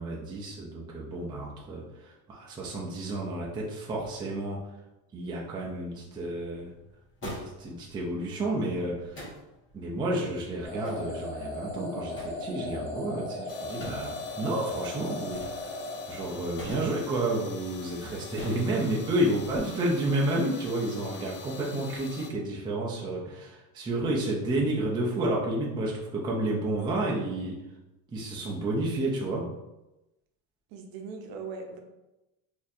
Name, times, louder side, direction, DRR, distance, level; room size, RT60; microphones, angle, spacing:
voice 1, 0.0-4.6 5.1-6.7 7.2-9.2 9.7-15.8 16.1-27.6 28.1-29.5, right 1 dB, 10° right, -4 dB, 0.4 m, -31 dB
sound 1, 5.6-19.6, equal, 30° left, 1.4 m, -47 dB
sound 2, 10.6-16.8, left 1 dB, 5° left, 0.9 m, -37 dB
sound 3, 13.5-22.3, left 6 dB, 70° left, 0.7 m, -45 dB
voice 2, 30.7-31.8, right 4 dB, 60° right, 3 dB, 0.7 m, -39 dB
4.1 x 2.7 x 2.4 m, 0.97 s
cardioid pair, 150°, 40 cm